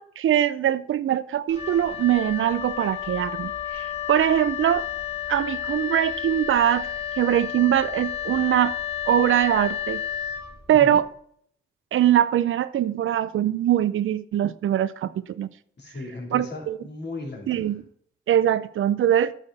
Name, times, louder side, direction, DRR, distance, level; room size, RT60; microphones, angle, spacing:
voice 1, 0.0-4.9 5.3-8.8 9.1-10.0 10.7-11.1 11.9-15.5 16.3-16.8 17.5-17.8 18.3-19.3, right 11 dB, 70° right, 0.5 m, -22 dB
Wind instrument woodwind instrument, 1.5-11.0, left 10 dB, 30° left, 2.7 m, -31 dB
voice 2, 15.8-17.8, left 2 dB, 55° left, 3.3 m, -36 dB
9.8 x 6.6 x 4.1 m
supercardioid pair, 50°, 21 cm